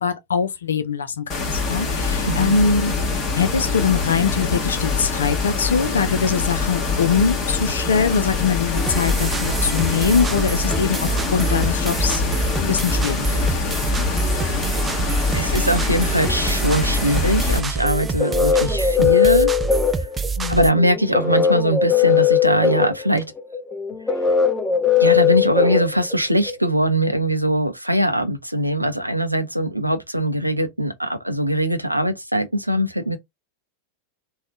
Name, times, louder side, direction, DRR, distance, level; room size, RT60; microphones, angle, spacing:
voice 1, 0.0-2.9 3.3-13.4 20.4-20.8, left 6 dB, 70° left, 0.5 m, -22 dB
sound 1, 1.3-17.6, left 4 dB, 30° left, 1.5 m, -24 dB
voice 2, 2.3-2.6 15.3-19.5 19.9-20.1 20.5-23.2 25.0-33.2, right 1 dB, 90° right, 0.5 m, -21 dB
sound 2, 8.7-20.7, right 5 dB, 15° right, 0.3 m, -26 dB
sound 3, 17.8-26.5, left 8 dB, 10° left, 1.1 m, -19 dB
3.5 x 2.3 x 3.6 m
figure-of-eight pair, 90°, 0 cm